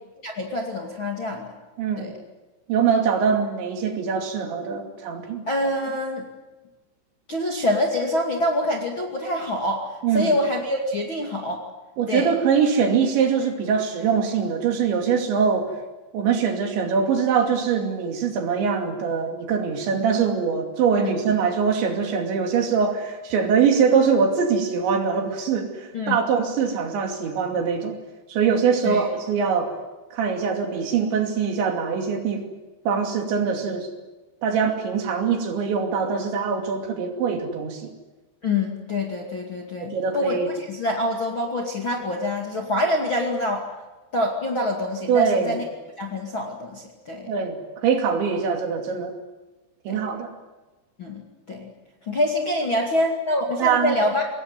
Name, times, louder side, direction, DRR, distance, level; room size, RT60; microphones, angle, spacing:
voice 1, 0.2-1.6 2.0-2.1 5.5-6.2 7.3-11.6 12.1-12.3 21.0-21.1 25.9-26.2 28.8-29.1 38.4-43.6 44.1-45.6 46.0-47.3 49.9-50.0 51.0-51.2 51.5-51.7 52.0-54.3, left 1 dB, 35° left, 0 dB, 2.1 m, -26 dB
voice 2, 1.8-2.1 2.7-5.4 10.0-10.4 12.0-15.7 16.1-28.0 28.3-29.7 30.1-32.5 32.9-33.9 34.4-37.9 39.8-40.5 45.1-45.6 47.3-49.1 49.9-50.3 53.6-54.0, right 6 dB, 65° right, 4 dB, 4.7 m, -23 dB
24.5 x 20.0 x 9.5 m, 1.1 s
omnidirectional pair, 5.7 m